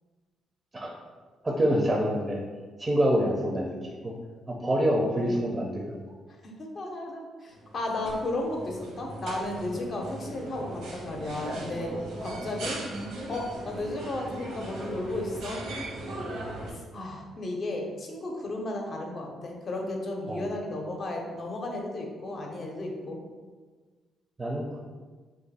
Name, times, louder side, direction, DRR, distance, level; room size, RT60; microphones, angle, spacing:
voice 1, 1.4-2.4 2.8-3.7 4.0-4.1 4.5-6.0 20.3-20.5 24.4-24.8, equal, 20° right, -2 dB, 0.5 m, -26 dB
voice 2, 6.6-11.9 12.2-12.8 13.3-15.6 16.7-23.2, left 2 dB, 45° left, 1 dB, 0.6 m, -34 dB
sound 1, 7.5-16.7, right 1 dB, 85° right, 0.8 m, -38 dB
2.5 x 2.5 x 4.1 m, 1.4 s
cardioid pair, 90°, 0 cm